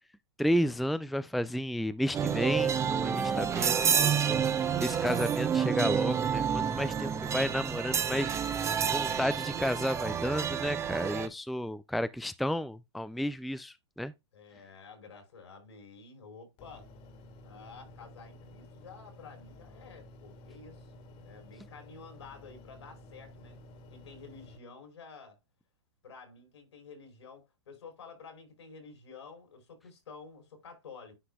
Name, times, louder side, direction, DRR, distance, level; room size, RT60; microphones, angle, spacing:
voice 1, 0.4-14.1, equal, ahead, 0.3 m, -32 dB
sound 1, 2.1-11.3, right 7 dB, 20° right, 0.8 m, -29 dB
voice 2, 14.3-16.9 17.4-20.9 21.2-23.6 23.9-25.4 26.0-31.1, left 5 dB, 80° left, 4.5 m, -50 dB
sound 2, 16.6-24.6, left 1 dB, 40° left, 2.1 m, -52 dB
9.9 x 5.8 x 2.2 m
hypercardioid pair, 115°, 14 cm